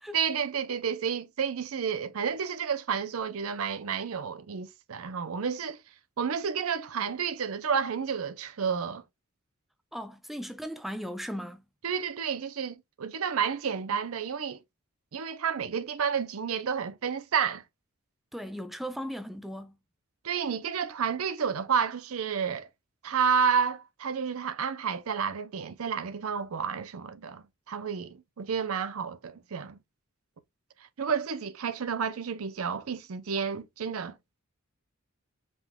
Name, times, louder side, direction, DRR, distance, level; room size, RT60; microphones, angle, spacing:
voice 1, 0.1-5.8 6.2-9.0 11.8-14.6 15.1-17.6 20.2-22.7 23.0-29.8 31.0-34.2, right 6 dB, 75° right, 0.6 m, -30 dB
voice 2, 9.9-11.6 18.3-19.7, equal, ahead, 0.5 m, -37 dB
5.2 x 3.5 x 2.2 m
head